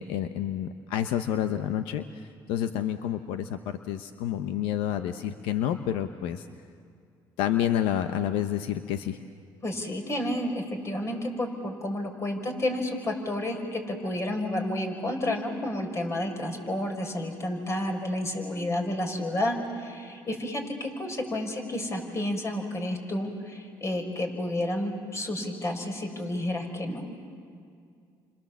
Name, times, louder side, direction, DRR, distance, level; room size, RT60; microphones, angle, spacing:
voice 1, 0.0-6.5 7.4-9.2, left 10 dB, 85° left, 8 dB, 0.9 m, -29 dB
voice 2, 9.6-27.0, left 1 dB, 35° left, 3 dB, 5.7 m, -31 dB
30.0 x 26.0 x 7.4 m, 2.3 s
supercardioid pair, 80°, 9 cm